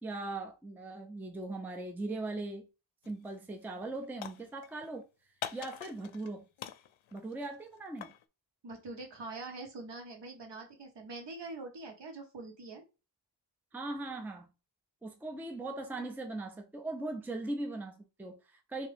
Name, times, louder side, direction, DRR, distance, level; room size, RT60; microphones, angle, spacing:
voice 1, 0.0-2.7 3.1-5.1 5.5-6.5 7.1-8.1 13.7-14.5 15.0-18.9, right 2 dB, 5° right, 0.4 m, -39 dB
sound 1, 3.0-3.3 3.6-4.9 5.4-6.3 6.6-8.2, left 10 dB, 90° left, 0.5 m, -44 dB
voice 2, 8.6-12.8, right 3 dB, 65° right, 1.2 m, -44 dB
3.6 x 2.8 x 3.4 m
wide cardioid pair, 165°, 45 cm